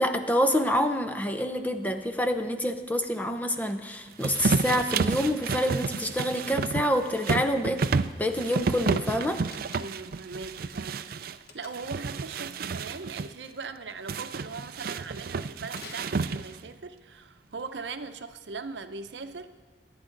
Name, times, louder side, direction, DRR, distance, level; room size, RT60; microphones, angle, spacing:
voice 1, 0.0-7.8 8.2-9.4, equal, 10° left, 7 dB, 0.7 m, -27 dB
sound 1, 4.2-11.4 11.7-13.3 14.1-16.7, right 4 dB, 55° right, 0.4 m, -30 dB
Slam, 9.4-10.2 11.5-12.0 15.7-16.8, left 3 dB, 60° left, 1.4 m, -48 dB
voice 2, 9.8-11.2 11.5-19.5, right 4 dB, 80° right, 9 dB, 0.7 m, -40 dB
22.0 x 9.9 x 3.9 m, 1.4 s
head